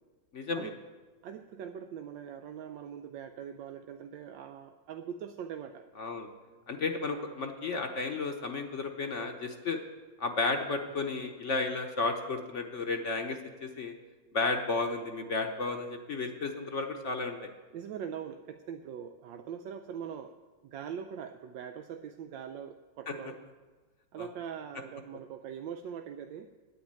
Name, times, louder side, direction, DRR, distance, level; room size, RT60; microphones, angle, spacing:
voice 1, 0.3-0.7 6.0-6.3 6.7-9.8 10.2-13.9 14.3-17.5 23.1-23.2 24.2-24.3, left 3 dB, 50° left, 4 dB, 1.0 m, -33 dB
voice 2, 1.2-5.9 17.7-20.4 20.6-23.4 24.1-26.5, right 8 dB, 90° right, 7 dB, 1.3 m, -42 dB
9.5 x 8.9 x 8.8 m, 1.3 s
omnidirectional pair, 1.9 m